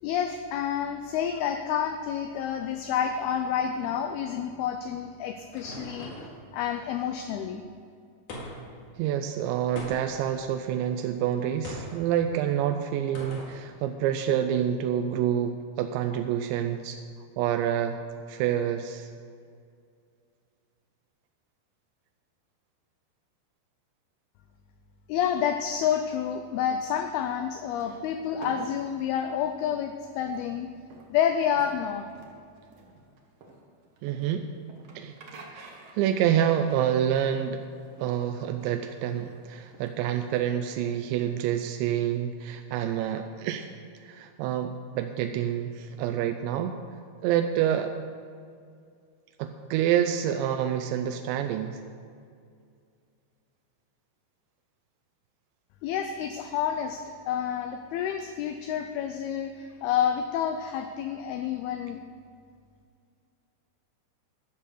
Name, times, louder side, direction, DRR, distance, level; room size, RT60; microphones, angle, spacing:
voice 1, 0.0-6.1 6.5-7.6 25.1-30.7 31.1-32.1 55.8-62.0, left 8 dB, 85° left, 7 dB, 2.2 m, -29 dB
sound 1, 4.9-6.4 8.3-8.8 9.8-10.3 11.6-12.0 13.2-13.6, equal, 50° left, 2.9 m, -40 dB
voice 2, 9.0-17.0 17.4-18.0 18.3-19.1 34.0-34.5 35.0-35.1 35.5-35.7 36.0-37.6 38.0-43.7 44.0-46.8 47.2-47.9 49.4-51.8, right 10 dB, 90° right, 6 dB, 2.9 m, -27 dB
sound 2, 27.7-40.8, right 3 dB, 75° right, 1.4 m, -50 dB
12.5 x 7.2 x 6.6 m, 2.3 s
omnidirectional pair, 5.0 m